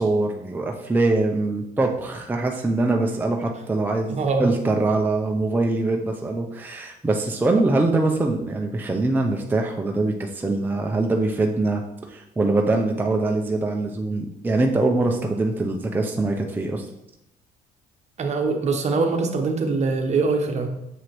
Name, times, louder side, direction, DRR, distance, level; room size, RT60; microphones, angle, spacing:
voice 1, 0.0-11.8 12.1-16.9, right 2 dB, 10° right, 1 dB, 0.5 m, -23 dB
voice 2, 4.1-4.5 18.2-20.7, right 4 dB, 40° right, 4 dB, 0.9 m, -23 dB
7.0 x 4.8 x 3.0 m, 0.84 s
cardioid pair, 110°, 17 cm